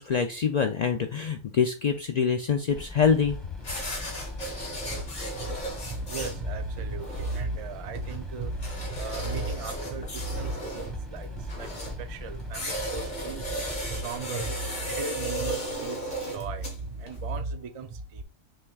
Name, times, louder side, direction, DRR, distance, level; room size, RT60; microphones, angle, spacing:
voice 1, 0.0-3.4, left 6 dB, 80° left, 0.3 m, -25 dB
sound 1, 2.7-14.0, left 2 dB, ahead, 1.1 m, -40 dB
sound 2, 3.6-17.4, right 1 dB, 40° left, 1.5 m, -36 dB
voice 2, 5.8-13.5 13.8-18.2, right 3 dB, 50° right, 0.4 m, -35 dB
6.2 x 3.4 x 2.3 m
omnidirectional pair, 1.3 m